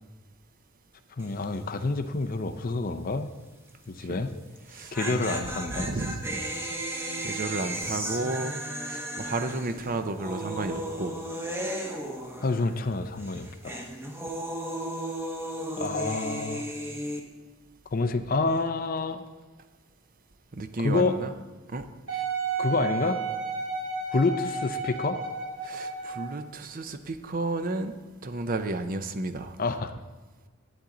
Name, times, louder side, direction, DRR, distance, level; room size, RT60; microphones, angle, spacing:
voice 1, 1.2-3.3 3.9-4.3 4.9-5.9 12.4-13.9 15.8-16.7 17.9-19.2 20.8-21.2 22.6-23.2 24.1-25.2 29.6-30.0, left 3 dB, 40° left, 0.5 m, -28 dB
sound 1, 1.2-1.6 1.8-1.9 4.6-12.9 13.2-17.2, right 1 dB, 10° right, 0.9 m, -35 dB
voice 2, 4.7-5.4 5.8-6.5 7.2-11.2 20.5-21.3 21.7-21.8 25.6-27.9 28.2-29.6, right 2 dB, 40° right, 0.6 m, -32 dB
Wind instrument woodwind instrument, 22.1-26.4 27.0-27.1, right 4 dB, 85° right, 3.1 m, -32 dB
11.5 x 8.7 x 3.8 m
head